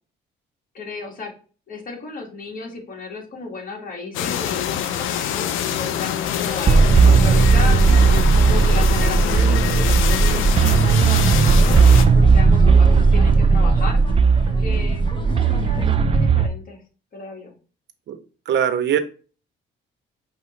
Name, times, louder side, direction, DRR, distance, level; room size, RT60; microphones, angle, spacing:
voice 1, 0.7-1.3 1.7-7.8 8.5-11.8 12.1-14.0 14.6-16.8 17.1-17.5, left 4 dB, 45° left, 0 dB, 1.7 m, -33 dB
sound 1, 4.1-12.0, left 10 dB, 85° left, 0.5 m, -25 dB
sound 2, 6.5-16.0, left 3 dB, 25° left, 0.7 m, -38 dB
sound 3, 6.7-16.5, right 5 dB, 30° right, 0.3 m, -15 dB
voice 2, 18.5-19.0, right 9 dB, 65° right, 9 dB, 0.7 m, -20 dB
5.5 x 2.9 x 3.1 m, 0.38 s
cardioid pair, 90°, 20 cm